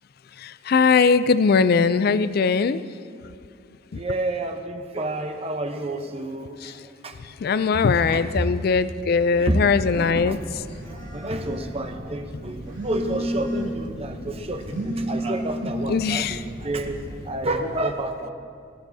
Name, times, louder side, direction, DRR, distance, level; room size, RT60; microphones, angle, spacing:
voice 1, 0.4-2.8 3.9-4.0 6.6-6.7 7.4-10.4 15.9-16.4, left 5 dB, 50° left, 14 dB, 0.4 m, -20 dB
voice 2, 3.9-7.2 7.7-8.5 9.4-10.4 10.9-18.3, right 1 dB, 30° right, 6 dB, 0.8 m, -29 dB
Telephone, 9.5-17.5, equal, 85° right, 2.5 m, -33 dB
20.0 x 13.5 x 2.8 m, 2.3 s
head